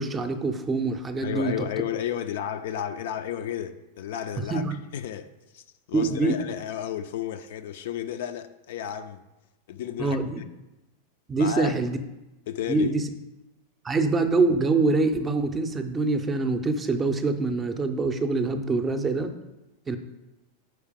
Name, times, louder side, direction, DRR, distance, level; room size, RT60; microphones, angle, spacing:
voice 1, 0.0-1.7 4.5-4.7 5.9-6.4 10.0-10.4 11.3-12.0 12.7-13.0 13.8-19.3 19.9-20.0, right 3 dB, 20° right, 8 dB, 0.5 m, -25 dB
voice 2, 1.2-4.7 4.9-9.2 9.7-10.5 11.4-11.8 12.5-12.9, left 10 dB, 55° left, 10 dB, 0.3 m, -33 dB
5.0 x 4.7 x 5.0 m, 1.0 s
figure-of-eight pair, 90°, 0 cm